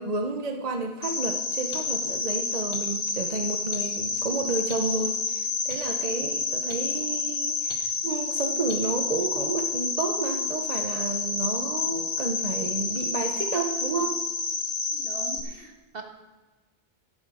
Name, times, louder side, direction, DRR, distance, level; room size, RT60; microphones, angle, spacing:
voice 1, 0.0-14.2, right 3 dB, 40° right, 5 dB, 0.9 m, -31 dB
sound 1, 0.7-0.8 1.7-1.8 2.7-2.8 3.7-3.8 4.7-4.8 5.7-5.8 6.7-6.8 7.7-7.8 8.7-8.8, left 3 dB, 55° left, 1.6 m, -41 dB
Cricket, 1.0-15.4, left 4 dB, 90° left, 1.4 m, -29 dB
voice 2, 14.9-16.0, right 3 dB, 65° right, 4 dB, 1.6 m, -41 dB
12.5 x 10.5 x 5.0 m, 1.2 s
omnidirectional pair, 1.0 m